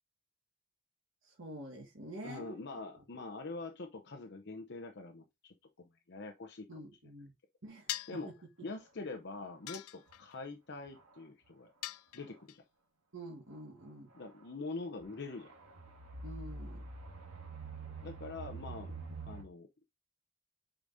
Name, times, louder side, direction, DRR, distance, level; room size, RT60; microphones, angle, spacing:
voice 1, 1.2-2.7 6.7-7.3 7.6-7.9 8.6-8.7 13.1-14.1 16.2-16.8, right 1 dB, 60° right, 1.5 m, -47 dB
voice 2, 2.2-6.7 8.1-8.3 8.6-11.7 12.1-12.6 14.1-15.5 18.0-18.9 19.3-19.7, left 3 dB, 50° left, 0.7 m, -44 dB
sound 1, 7.9-8.3 9.7-10.4 11.8-12.6, left 15 dB, 80° left, 0.4 m, -42 dB
sound 2, 10.1-10.2 10.9-11.2 12.2-12.3 14.2-14.5 15.0-19.4, right 3 dB, 85° right, 1.8 m, -46 dB
8.8 x 4.9 x 2.6 m
head